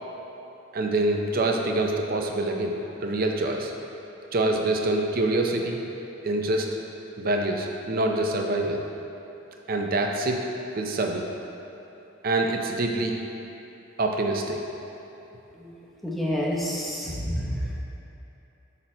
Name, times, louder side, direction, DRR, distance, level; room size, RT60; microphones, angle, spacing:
voice 1, 0.7-3.7 4.3-5.8 6.2-6.7 7.2-8.8 9.7-10.4 10.8-11.2 12.2-13.2 14.0-14.7, right 2 dB, 45° right, 2 dB, 0.6 m, -25 dB
voice 2, 16.0-17.5, equal, ahead, -6 dB, 0.9 m, -28 dB
6.6 x 5.9 x 4.3 m, 3.0 s
head